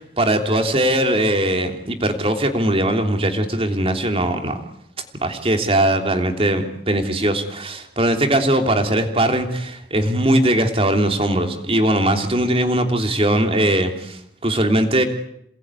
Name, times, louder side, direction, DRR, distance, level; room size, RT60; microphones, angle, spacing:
voice 1, 0.0-4.6 5.2-15.0, right 1 dB, 30° right, 5 dB, 3.1 m, -20 dB
28.0 x 20.0 x 9.8 m, 0.78 s
head